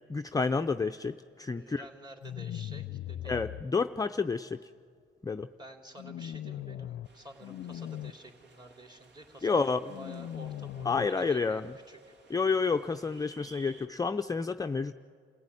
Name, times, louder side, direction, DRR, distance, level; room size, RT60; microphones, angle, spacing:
voice 1, 0.0-1.8 3.2-4.7 5.2-5.5 9.4-9.9 10.8-11.7 12.3-14.9, left 4 dB, 20° left, 6 dB, 0.5 m, -30 dB
voice 2, 1.4-3.4 5.6-9.6 10.0-12.0, right 2 dB, 20° right, 2 dB, 3.6 m, -50 dB
sound 1, 2.2-3.6 6.0-7.1 7.4-8.1 9.9-11.1, left 11 dB, 65° left, 0.5 m, -39 dB
sound 2, 7.0-13.9, right 4 dB, 60° right, 1.9 m, -59 dB
27.5 x 16.0 x 9.9 m, 2.2 s
cardioid pair, 90°, 20 cm